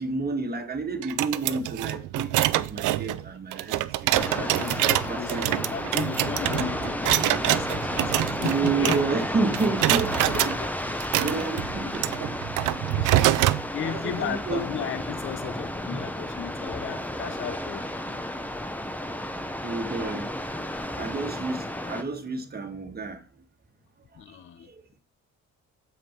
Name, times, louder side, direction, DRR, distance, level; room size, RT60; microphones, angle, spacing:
voice 1, 0.0-4.5 5.1-5.4 8.4-10.6 11.2-12.4 13.1-13.2 13.8-14.6 19.6-20.3 20.9-23.2 24.7-24.8, right 4 dB, 30° right, 1.5 m, -30 dB
sound 1, 1.0-9.3 9.5-10.5 11.0-13.6, right 16 dB, 90° right, 0.5 m, -25 dB
voice 2, 2.9-3.3 4.1-9.0 10.3-11.1 11.6-11.9 13.0-13.4 13.7-18.2 24.2-24.7, left 9 dB, 40° left, 0.6 m, -36 dB
sound 2, 4.1-22.0, left 1 dB, 5° left, 0.7 m, -32 dB
7.3 x 5.2 x 4.4 m
cardioid pair, 90°, 30 cm